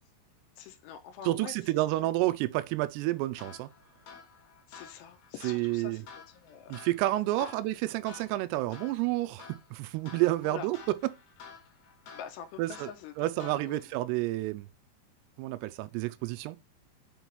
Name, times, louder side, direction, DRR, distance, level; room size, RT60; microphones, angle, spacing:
voice 1, 0.6-1.7 4.7-6.7 7.4-7.5 10.4-10.7 12.1-13.1 13.4-13.8, left 8 dB, 80° left, 2.8 m, -45 dB
voice 2, 1.2-3.7 5.4-6.0 6.7-11.0 12.6-12.9 13.2-14.7 15.4-16.6, right 17 dB, 85° right, 2.4 m, -30 dB
sound 1, 3.4-14.0, left 5 dB, 65° left, 4.0 m, -52 dB
7.5 x 3.1 x 5.3 m
omnidirectional pair, 5.2 m